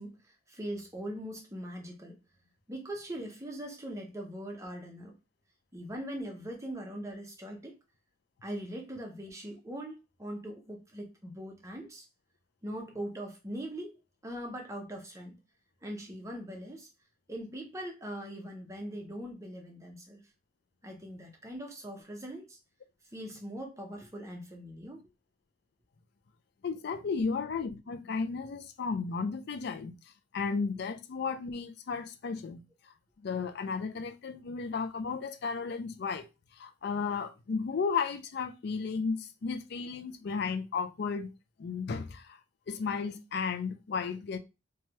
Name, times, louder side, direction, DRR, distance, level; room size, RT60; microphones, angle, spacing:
voice 1, 0.0-2.2 2.7-5.1 5.7-7.8 8.4-12.1 12.6-15.4 15.8-16.9 17.3-20.2 20.8-22.6 23.1-25.0, right 1 dB, 15° right, 0.6 m, -41 dB
voice 2, 26.6-29.9 30.3-32.6 33.2-36.3 36.6-41.3 41.6-42.4 42.7-44.4, left 5 dB, 55° left, 0.4 m, -34 dB
3.1 x 2.3 x 2.8 m
head